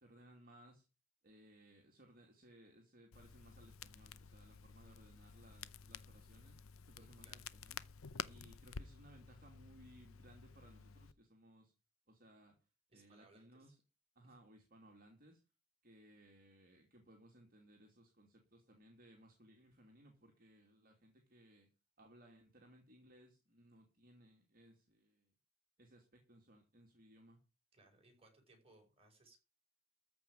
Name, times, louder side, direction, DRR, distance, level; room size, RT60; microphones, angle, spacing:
voice 1, 0.0-0.8 1.2-6.6 6.9-7.8 8.3-11.7 12.1-12.6 12.9-13.8 14.2-15.4 15.8-21.7 22.0-25.3 25.8-27.4, right 1 dB, 45° right, 2 dB, 2.6 m, -63 dB
Crackle, 3.1-11.1, left 7 dB, 85° left, 0.7 m, -52 dB
voice 2, 7.0-7.5 12.9-13.7 14.2-14.4 27.7-29.4, right 2 dB, 30° right, 3 dB, 5.5 m, -67 dB
14.0 x 5.2 x 8.9 m, 0.30 s
head